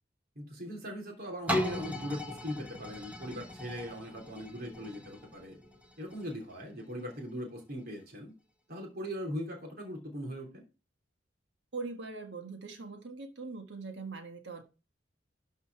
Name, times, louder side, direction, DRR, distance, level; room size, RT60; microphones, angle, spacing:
voice 1, 0.3-5.6 6.0-8.3 8.7-10.6, equal, 55° right, 3.3 m, -40 dB
sound 1, 1.5-7.2 7.8-7.9, left 1 dB, 10° right, 1.5 m, -38 dB
voice 2, 11.7-14.6, right 4 dB, 75° right, 1.6 m, -41 dB
12.5 x 5.4 x 4.7 m
head